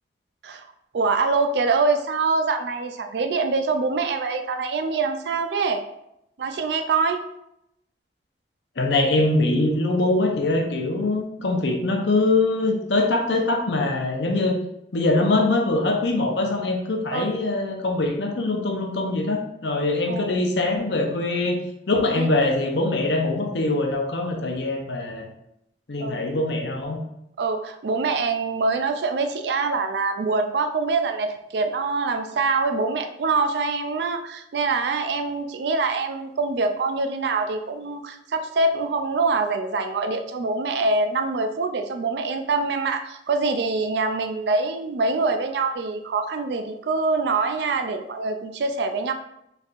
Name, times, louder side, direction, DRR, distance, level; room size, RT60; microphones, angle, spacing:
voice 1, 0.9-5.8 6.4-7.2 17.1-17.3 20.1-20.3 22.1-22.3 26.0-26.2 27.4-49.1, right 3 dB, 65° right, 7 dB, 0.4 m, -24 dB
voice 2, 8.8-14.6 14.9-21.6 21.9-25.3 25.9-27.0, left 2 dB, 75° left, 2 dB, 0.7 m, -23 dB
4.2 x 3.3 x 2.4 m, 0.82 s
head